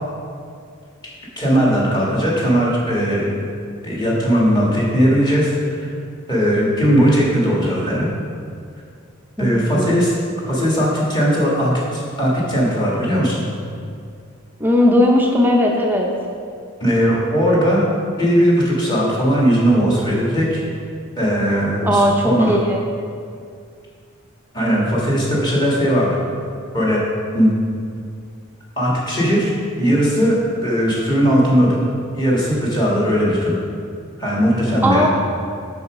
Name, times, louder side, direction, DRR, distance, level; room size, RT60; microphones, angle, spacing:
voice 1, 1.4-3.5 3.8-5.9 6.3-8.1 9.4-10.1 10.5-13.5 16.8-17.9 18.2-20.6 21.2-22.6 24.5-26.2 26.7-27.0 27.3-27.5 28.8-29.5 29.8-31.8 32.1-33.5 34.2-35.1, equal, 20° left, -5 dB, 1.8 m, -18 dB
voice 2, 9.4-9.9 14.6-16.1 21.8-22.8 34.8-35.1, left 1 dB, 10° right, -1 dB, 0.6 m, -17 dB
7.0 x 6.3 x 4.9 m, 2.3 s
head